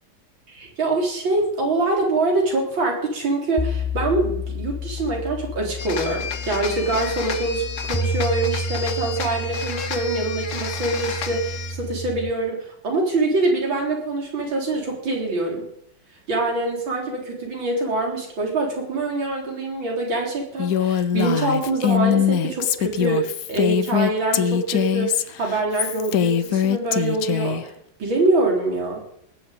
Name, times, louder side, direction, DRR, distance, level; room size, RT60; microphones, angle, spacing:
voice 1, 0.5-15.6 16.3-27.7 28.0-29.0, right 2 dB, 70° right, 0 dB, 4.7 m, -24 dB
sound 1, 3.6-12.3, left 1 dB, 10° left, 0.5 m, -30 dB
sound 2, 5.8-11.9, left 6 dB, 45° left, 1.2 m, -32 dB
Female speech woman speaking, 20.6-27.6, left 9 dB, 65° left, 1.0 m, -22 dB
19.0 x 7.6 x 8.6 m, 0.73 s
omnidirectional pair, 2.2 m